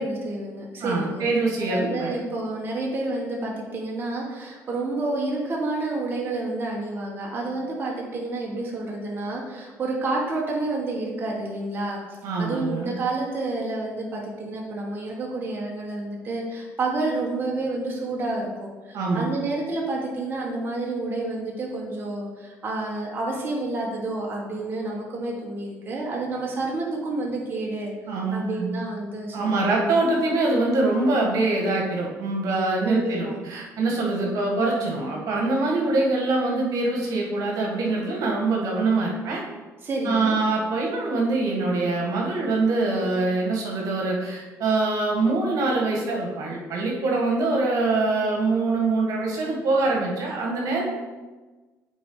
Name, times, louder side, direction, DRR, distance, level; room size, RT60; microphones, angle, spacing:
voice 1, 0.0-1.3 1.6-12.0 12.4-27.9 28.3-29.8 32.8-33.4 39.8-40.4, right 2 dB, 35° right, -3 dB, 1.5 m, -29 dB
voice 2, 0.8-2.1 12.2-12.9 18.9-19.3 28.1-28.7 29.3-39.4 40.0-50.8, right 3 dB, 65° right, -2 dB, 1.6 m, -24 dB
7.1 x 4.5 x 3.9 m, 1.3 s
cardioid pair, 105°, 6 cm